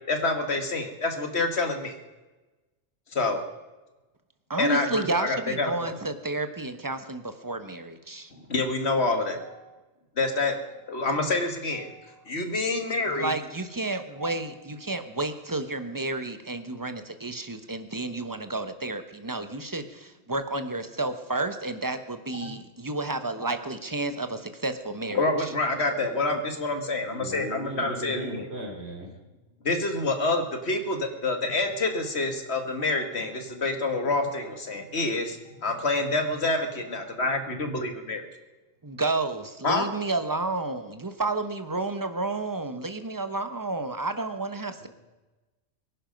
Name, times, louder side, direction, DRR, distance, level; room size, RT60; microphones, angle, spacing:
voice 1, 0.1-1.9 3.1-3.4 4.6-5.9 8.5-9.4 10.2-10.6 10.9-11.9 12.3-13.3 22.4-22.5 25.1-28.5 29.6-38.2 39.6-39.9, left 2 dB, 55° left, 6 dB, 2.1 m, -27 dB
voice 2, 4.5-8.3 13.1-25.5 38.8-44.9, right 2 dB, 15° right, 9 dB, 1.0 m, -31 dB
voice 3, 26.9-29.1 44.8-44.9, equal, 55° right, -1 dB, 3.3 m, -37 dB
24.0 x 10.5 x 5.3 m, 1.1 s
omnidirectional pair, 1.3 m